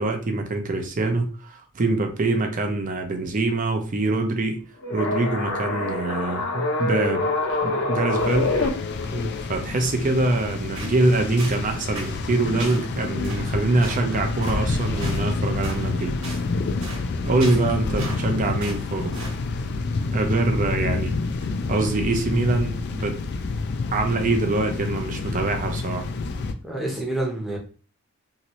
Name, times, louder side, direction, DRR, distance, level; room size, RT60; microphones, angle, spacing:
voice 1, 0.0-4.6 4.9-7.3 7.6-8.5 9.5-16.2 17.2-19.2 20.1-21.1 21.7-23.2 23.9-26.1, right 2 dB, 35° right, 5 dB, 0.5 m, -24 dB
sound 1, 4.8-8.7, left 2 dB, 65° left, 0.8 m, -25 dB
sound 2, 8.2-26.5, left 3 dB, 50° left, 0.3 m, -28 dB
sound 3, 10.8-11.0 11.4-11.6 12.0-12.2 12.6-12.8 13.2-13.4 13.8-14.0 14.4-14.6 15.0-15.2 15.6-15.8 16.2-16.4 16.8-17.0 17.4-18.3 18.6-18.8 19.1-19.4, right 2 dB, 60° right, 1.1 m, -37 dB
voice 2, 26.6-27.6, right 1 dB, ahead, -3 dB, 0.7 m, -28 dB
2.8 x 2.6 x 3.0 m, 0.39 s
head